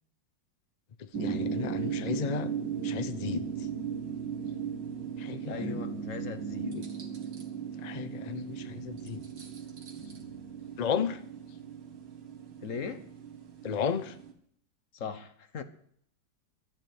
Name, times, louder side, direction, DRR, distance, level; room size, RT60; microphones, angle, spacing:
sound 1, 1.1-14.3, right 6 dB, 65° right, 2.5 m, -37 dB
voice 1, 1.2-2.5 2.8-3.4 5.2-5.8 6.6-6.8 7.8-9.2 10.8-11.2 13.6-14.1, left 7 dB, 80° left, 12 dB, 0.3 m, -33 dB
voice 2, 5.5-6.8 12.6-13.1 14.9-15.6, left 5 dB, 45° left, 11 dB, 1.4 m, -39 dB
12.5 x 10.5 x 8.1 m, 0.65 s
omnidirectional pair, 2.1 m